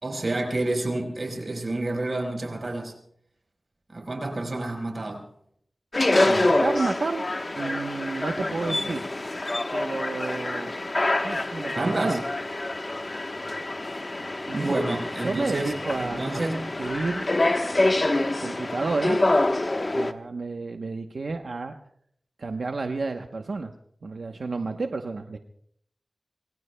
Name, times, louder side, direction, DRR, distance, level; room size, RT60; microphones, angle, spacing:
voice 1, 0.0-2.9 3.9-5.2 11.8-12.2 14.5-16.7, right 2 dB, 55° right, 4.4 m, -29 dB
sound 1, 5.9-20.1, left 2 dB, 40° left, 1.1 m, -26 dB
voice 2, 6.2-7.2 7.6-9.1 9.7-10.8 11.2-12.2 14.5-14.8 15.2-17.3 18.4-19.2 19.9-21.8 22.4-23.7 24.0-25.4, right 3 dB, 80° right, 0.9 m, -31 dB
27.0 x 23.0 x 2.2 m
wide cardioid pair, 70°, 0 cm